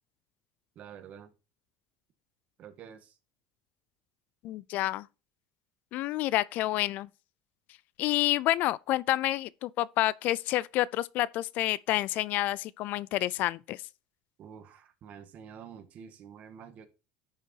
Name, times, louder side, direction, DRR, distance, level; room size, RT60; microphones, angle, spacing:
voice 1, 0.7-1.3 2.6-3.2 14.4-16.9, right 8 dB, 45° right, 1.7 m, -48 dB
voice 2, 4.4-5.1 5.9-7.1 8.0-13.8, left 16 dB, 55° left, 0.4 m, -29 dB
10.5 x 6.5 x 2.8 m
cardioid pair, 135°, 4 cm